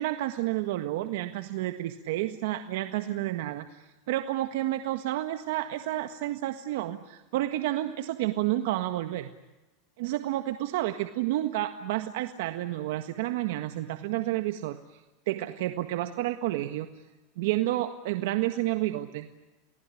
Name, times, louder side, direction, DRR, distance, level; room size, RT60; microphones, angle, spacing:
voice 1, 0.0-9.3 10.0-15.0 15.3-16.9 17.4-19.3, right 15 dB, 70° right, 7 dB, 1.6 m, -30 dB
29.5 x 19.0 x 10.0 m, 1.1 s
supercardioid pair, 155°, 0 cm